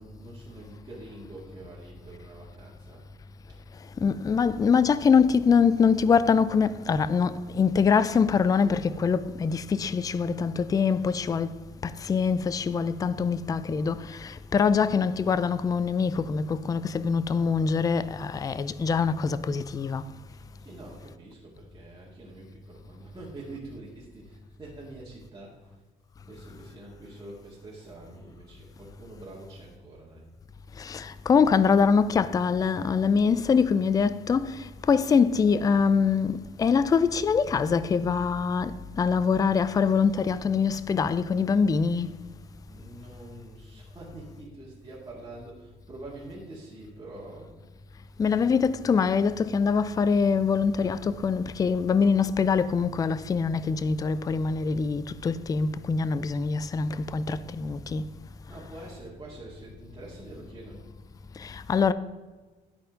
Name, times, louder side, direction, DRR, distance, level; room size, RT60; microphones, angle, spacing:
voice 1, 0.0-3.0 3.5-3.6 20.3-25.8 26.3-30.3 42.2-42.3 42.7-47.6 48.2-48.5 58.5-60.8, right 2 dB, 20° right, 2.0 m, -45 dB
voice 2, 4.0-11.6 11.8-20.0 30.8-42.1 48.2-58.1 61.4-61.9, left 5 dB, 20° left, 0.3 m, -24 dB
10.5 x 4.4 x 5.0 m
cardioid pair, 110°, 17 cm